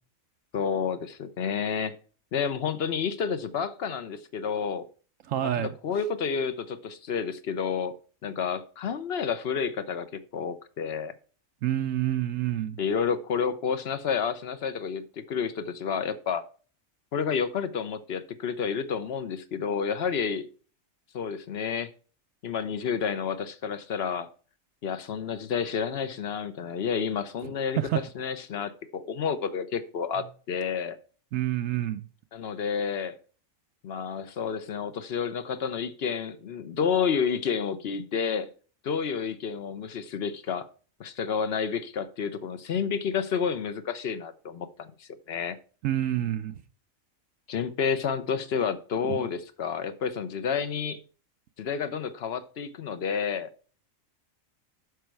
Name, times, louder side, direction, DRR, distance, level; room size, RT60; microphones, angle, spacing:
voice 1, 0.5-1.9 2.3-4.8 5.4-7.9 8.2-11.1 12.8-16.4 17.1-20.5 21.1-21.9 22.4-24.3 24.8-27.8 28.1-31.0 32.3-33.2 33.8-38.5 38.8-40.7 41.0-45.6 47.5-51.0 51.6-53.5, left 6 dB, 55° left, 0.9 m, -30 dB
voice 2, 5.3-5.7 11.6-12.8 27.4-28.0 31.3-32.1 45.8-46.5 49.0-49.3, right 12 dB, 75° right, 1.0 m, -28 dB
9.5 x 6.2 x 4.5 m
omnidirectional pair, 1.4 m